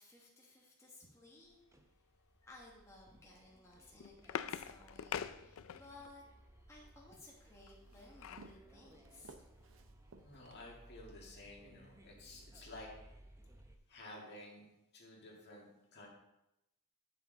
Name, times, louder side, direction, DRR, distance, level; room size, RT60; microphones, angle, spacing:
voice 1, 0.0-1.6 2.4-6.2 6.7-9.4, left 2 dB, 15° left, -4 dB, 1.4 m, -58 dB
sound 1, 1.4-13.8, right 1 dB, 15° right, 0.6 m, -61 dB
sound 2, 3.6-6.1 7.7-8.6 9.0-9.1 9.4-9.6, left 8 dB, 65° left, 0.4 m, -44 dB
Walk footsteps, 6.8-11.1, right 3 dB, 60° right, 0.6 m, -60 dB
voice 2, 10.2-12.9 13.9-14.6 14.9-16.1, left 2 dB, 50° left, -2 dB, 1.9 m, -53 dB
9.8 x 5.9 x 3.9 m, 0.89 s
head